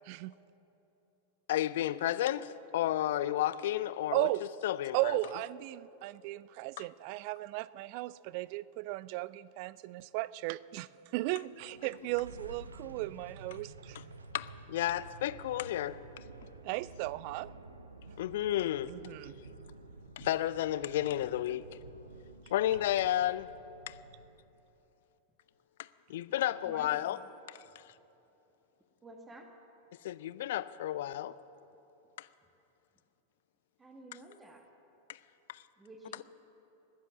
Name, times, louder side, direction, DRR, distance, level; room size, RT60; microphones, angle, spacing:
voice 1, 1.5-4.3 4.6-5.2 6.8-6.9 14.3-16.0 18.2-18.9 20.2-21.6 22.5-23.5 23.9-24.0 25.8-27.2 27.5-27.8 30.0-31.4 32.2-32.3 35.1-35.2 35.5-35.6, left 13 dB, 55° left, 0.4 m, -32 dB
voice 2, 4.1-4.5 4.9-14.0 16.6-17.5 18.9-19.4, right 18 dB, 45° right, 0.3 m, -36 dB
sound 1, 11.4-24.5, right 3 dB, 75° right, 0.7 m, -51 dB
voice 3, 26.6-27.2 29.0-29.5 33.8-34.7 35.8-36.2, right 2 dB, 15° right, 1.3 m, -51 dB
20.0 x 7.7 x 8.3 m
figure-of-eight pair, 90°, 0 cm